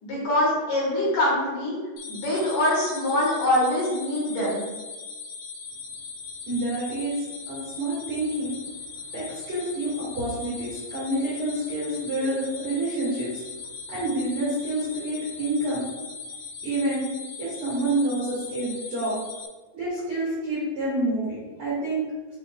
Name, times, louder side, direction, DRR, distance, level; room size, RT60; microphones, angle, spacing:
voice 1, 0.0-1.8 2.1-4.7, left 1 dB, 65° left, -7 dB, 2.3 m, -24 dB
sound 1, 2.0-19.5, left 5 dB, 90° left, 2.6 m, -39 dB
voice 2, 6.4-8.5 9.1-13.4 13.9-15.8 16.6-17.0 17.4-19.2 19.7-22.0, right 1 dB, 85° right, -9 dB, 1.2 m, -28 dB
7.8 x 2.6 x 2.3 m, 1.3 s
omnidirectional pair, 4.5 m